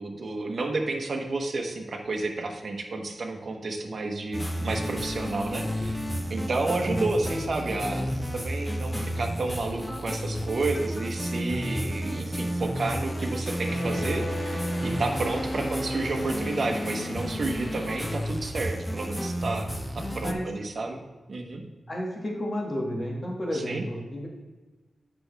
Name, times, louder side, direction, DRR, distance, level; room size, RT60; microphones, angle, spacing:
voice 1, 0.0-8.1 8.3-21.0 21.3-21.6 23.5-23.8, right 3 dB, 55° right, 2 dB, 1.1 m, -31 dB
sound 1, 4.3-20.3, equal, 10° left, 0.7 m, -31 dB
voice 2, 8.9-9.3 9.6-9.7 15.6-15.8 20.2-20.5 21.9-24.3, equal, 35° left, -1 dB, 1.7 m, -32 dB
sound 2, 13.6-18.7, left 2 dB, 60° left, 1.9 m, -39 dB
7.8 x 6.1 x 3.4 m, 1.2 s
wide cardioid pair, 130°, 0 cm